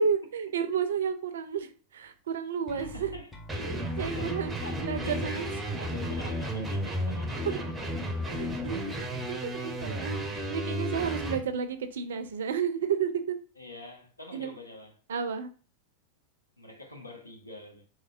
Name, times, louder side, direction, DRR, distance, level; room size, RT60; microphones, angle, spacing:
voice 1, 0.0-3.1 3.6-5.5 7.5-7.6 8.2-13.4 14.3-14.5 15.1-15.5, right 6 dB, 60° right, 0.4 m, -32 dB
voice 2, 2.7-3.9 4.1-7.9 13.6-15.0 16.6-17.9, left 1 dB, 85° left, 0.7 m, -45 dB
sound 1, 2.7-6.7, left 3 dB, 15° left, 0.8 m, -45 dB
sound 2, 3.5-11.4, equal, 15° right, 0.6 m, -33 dB
3.6 x 3.1 x 2.4 m
figure-of-eight pair, 90°, 0 cm